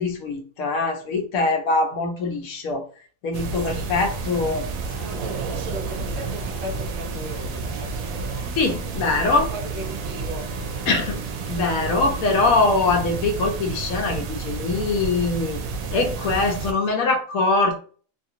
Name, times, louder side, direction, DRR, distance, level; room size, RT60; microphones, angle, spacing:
voice 1, 0.0-2.9 3.2-4.7 8.6-9.5 10.9-11.2 11.5-15.6 15.9-17.8, left 3 dB, 85° left, 1.1 m, -23 dB
sound 1, 3.3-16.7, right 4 dB, 90° right, 1.0 m, -31 dB
sound 2, 4.0-14.3, right 2 dB, 15° right, 1.1 m, -43 dB
voice 2, 4.9-8.4 9.5-10.5, right 1 dB, 45° right, 0.9 m, -37 dB
2.8 x 2.4 x 2.7 m
omnidirectional pair, 1.4 m